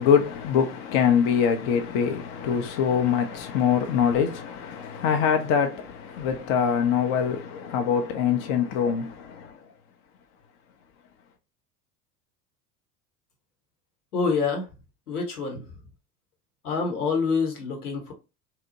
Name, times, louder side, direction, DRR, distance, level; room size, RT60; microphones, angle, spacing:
voice 1, 0.0-9.6, left 7 dB, 35° left, 0.4 m, -24 dB
voice 2, 14.1-14.7 15.1-15.6 16.6-18.1, left 5 dB, 75° left, 1.0 m, -26 dB
2.7 x 2.0 x 2.7 m
figure-of-eight pair, 75°, 46 cm